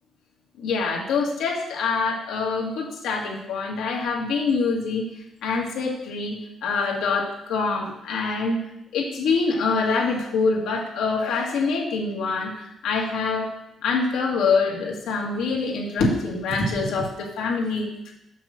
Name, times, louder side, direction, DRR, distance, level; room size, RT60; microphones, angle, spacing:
voice 1, 0.6-8.6 8.9-13.5 13.8-18.1, left 4 dB, 85° left, -1 dB, 2.0 m, -25 dB
6.9 x 6.1 x 6.0 m, 0.82 s
cardioid pair, 90°, 0 cm